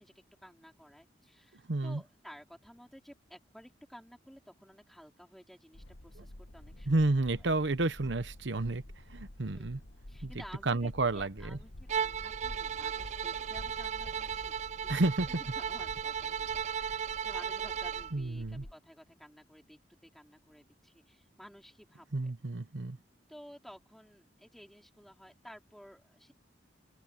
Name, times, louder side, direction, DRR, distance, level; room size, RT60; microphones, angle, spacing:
voice 1, 0.0-6.9 9.4-9.7 10.1-14.6 14.8-22.3 23.3-26.3, equal, ahead, 4.2 m, -54 dB
voice 2, 1.7-2.0 6.9-8.8 9.1-9.8 10.2-10.3 10.7-11.6 14.9-15.3 18.1-18.6 22.1-23.0, right 2 dB, 85° right, 1.0 m, -30 dB
sound 1, 5.7-18.7, left 1 dB, 80° left, 1.6 m, -49 dB
Bowed string instrument, 11.9-18.1, right 8 dB, 40° right, 0.3 m, -35 dB
open air
head